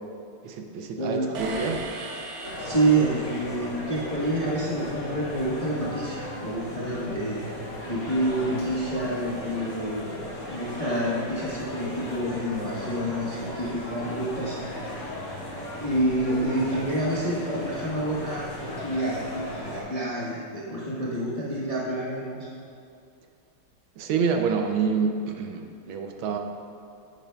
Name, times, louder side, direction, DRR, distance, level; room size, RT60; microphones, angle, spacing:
voice 1, 0.4-1.8 24.0-26.4, right 5 dB, 75° right, 4 dB, 1.4 m, -27 dB
voice 2, 1.0-1.3 2.6-7.4 7.8-10.1 10.5-14.6 15.3-15.5 15.8-19.2 19.5-22.5, right 1 dB, 25° left, -7 dB, 0.9 m, -28 dB
sound 1, 1.3-3.6, right 2 dB, 60° right, 1.0 m, -37 dB
sound 2, 2.4-19.8, equal, 40° left, 2.7 m, -36 dB
9.9 x 9.5 x 2.3 m, 2.4 s
omnidirectional pair, 2.3 m